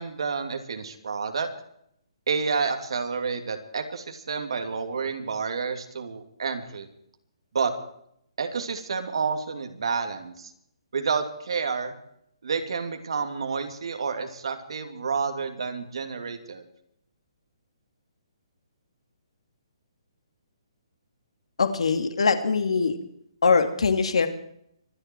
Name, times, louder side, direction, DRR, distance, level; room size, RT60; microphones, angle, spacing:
voice 1, 0.0-1.5 2.3-6.9 7.5-7.7 8.4-10.5 10.9-11.9 12.4-16.6, right 5 dB, 65° right, 5 dB, 3.0 m, -29 dB
voice 2, 21.6-23.0 23.4-24.3, left 5 dB, 90° left, 7 dB, 2.6 m, -22 dB
25.5 x 10.5 x 4.8 m, 0.71 s
hypercardioid pair, 175°, 3 cm